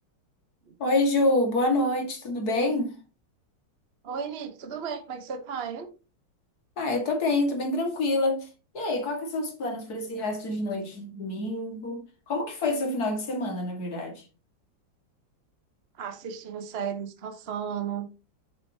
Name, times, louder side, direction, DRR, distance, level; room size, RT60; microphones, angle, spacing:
voice 1, 0.8-2.9 6.8-8.5 8.7-14.3, left 2 dB, 45° left, 2.4 m, -27 dB
voice 2, 4.0-5.9 16.0-18.1, right 7 dB, 40° right, 1.0 m, -34 dB
8.2 x 7.6 x 2.8 m
omnidirectional pair, 2.3 m